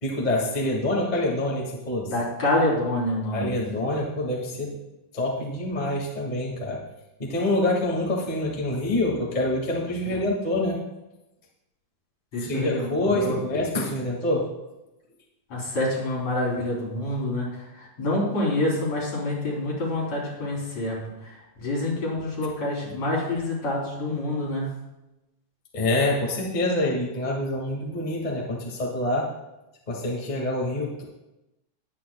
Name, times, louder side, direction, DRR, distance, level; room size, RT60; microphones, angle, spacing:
voice 1, 0.0-2.1 3.3-4.7 5.1-6.8 7.2-10.8 12.5-14.4 25.7-29.3 29.9-31.0, left 1 dB, 15° left, -2 dB, 1.7 m, -26 dB
voice 2, 2.1-3.6 12.3-13.4 15.5-24.7, left 1 dB, 55° left, -5 dB, 4.9 m, -27 dB
20.0 x 9.4 x 2.4 m, 0.95 s
omnidirectional pair, 3.6 m